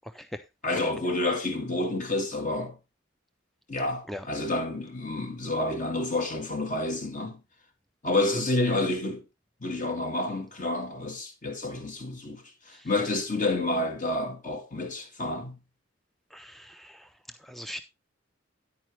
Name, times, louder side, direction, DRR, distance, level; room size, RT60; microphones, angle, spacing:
voice 1, 0.6-2.8 3.7-7.4 8.0-9.2 9.6-15.6, left 2 dB, 40° left, 1.9 m, -29 dB
voice 2, 16.3-17.1 17.4-17.8, equal, ahead, 0.4 m, -40 dB
10.0 x 8.9 x 3.1 m
head